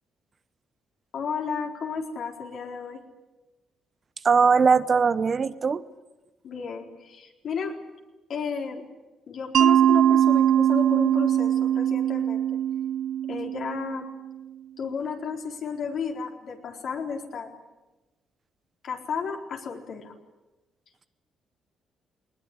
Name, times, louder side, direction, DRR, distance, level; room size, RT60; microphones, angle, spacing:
voice 1, 1.1-3.0 6.4-7.8 8.3-8.8 9.3-12.5 13.3-14.1 14.8-17.5 18.8-20.1, left 6 dB, 65° left, 1 dB, 4.3 m, -33 dB
voice 2, 4.2-5.8, right 5 dB, 40° right, 14 dB, 0.9 m, -20 dB
Mallet percussion, 9.5-14.3, right 10 dB, 70° right, 0.7 m, -22 dB
20.5 x 20.0 x 9.8 m, 1.1 s
cardioid pair, 90°, 0 cm